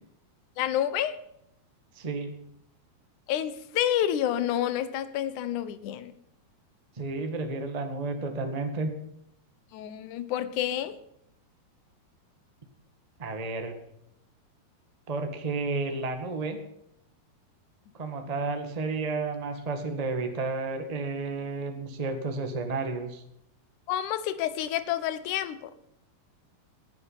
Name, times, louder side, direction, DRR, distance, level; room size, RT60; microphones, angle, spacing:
voice 1, 0.6-1.2 3.3-6.1 9.7-11.0 23.9-25.7, left 11 dB, 65° left, 13 dB, 2.2 m, -29 dB
voice 2, 1.9-2.3 7.0-8.9 13.2-13.7 15.1-16.6 17.9-23.2, right 3 dB, 25° right, 5 dB, 0.8 m, -31 dB
19.5 x 11.5 x 5.8 m, 0.77 s
omnidirectional pair, 4.5 m